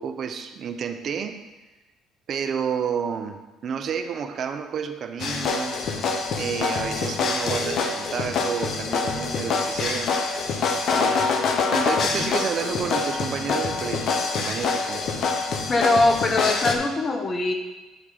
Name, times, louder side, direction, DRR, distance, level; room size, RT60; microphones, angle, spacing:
voice 1, 0.0-1.4 2.3-5.8 6.4-10.1 10.9-11.2 11.7-15.0, right 7 dB, 55° right, 8 dB, 0.7 m, -30 dB
sound 1, 5.2-16.7, left 4 dB, 60° left, 0.9 m, -25 dB
voice 2, 15.7-17.5, left 2 dB, 35° left, 4 dB, 1.2 m, -21 dB
10.0 x 3.6 x 5.0 m, 1.1 s
supercardioid pair, 75°, 0 cm